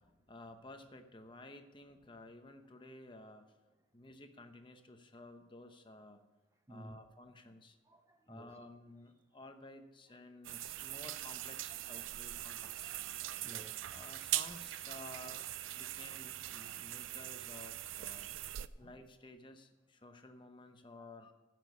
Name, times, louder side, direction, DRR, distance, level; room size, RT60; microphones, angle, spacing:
voice 1, 0.0-3.5 3.9-6.2 6.7-7.8 8.3-13.0 13.5-13.6 13.9-15.4 15.7-18.3 18.8-21.3, left 2 dB, 25° left, 0.9 m, -54 dB
voice 2, 7.8-8.6 10.1-10.3 10.6-10.9 11.8-12.1 12.8-14.0 18.5-18.9 21.0-21.1, right 1 dB, 15° right, 0.6 m, -56 dB
sound 1, 10.4-18.7, right 14 dB, 85° right, 0.4 m, -42 dB
15.5 x 6.2 x 7.0 m
head